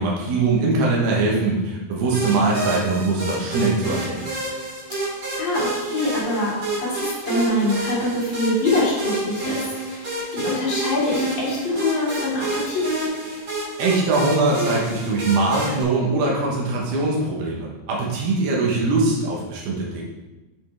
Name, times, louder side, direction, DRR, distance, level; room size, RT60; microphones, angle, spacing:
voice 1, 0.0-4.3 13.3-13.4 13.8-20.0, right 3 dB, 80° right, -3 dB, 3.3 m, -22 dB
sound 1, 2.1-15.8, right 2 dB, 45° right, 4.2 m, -29 dB
voice 2, 5.4-13.0, left 2 dB, 35° left, -7 dB, 2.5 m, -24 dB
8.1 x 5.3 x 4.6 m, 1.1 s
omnidirectional pair, 4.6 m